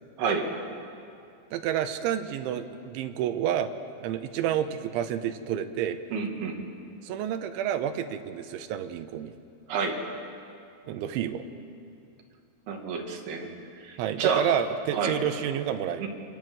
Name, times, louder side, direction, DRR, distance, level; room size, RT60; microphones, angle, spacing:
voice 1, 1.5-3.7 4.0-6.0 7.0-9.3 10.9-11.4 14.0-16.1, right 10 dB, 75° right, 8 dB, 3.1 m, -29 dB
voice 2, 6.1-6.6 9.7-10.0 12.7-13.5 13.8-14.4 14.9-15.2 16.0-16.1, right 6 dB, 55° right, 2 dB, 3.7 m, -29 dB
27.5 x 24.0 x 7.8 m, 2.5 s
omnidirectional pair, 6.0 m